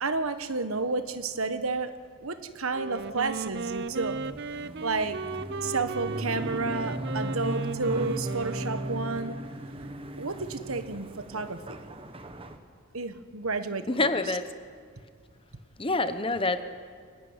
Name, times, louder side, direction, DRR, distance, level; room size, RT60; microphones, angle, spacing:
voice 1, 0.0-4.2 4.6-5.2 5.6-9.4 9.8-11.8 12.9-14.1, right 3 dB, 80° right, 10 dB, 1.3 m, -31 dB
Wind instrument woodwind instrument, 2.7-9.5, right 4 dB, 50° right, 0.6 m, -36 dB
sound 1, 3.0-12.6, right 1 dB, 25° right, 1.3 m, -37 dB
voice 2, 13.9-14.5 15.8-16.6, left 3 dB, 25° left, 10 dB, 1.0 m, -26 dB
25.0 x 16.5 x 9.8 m, 2.1 s
head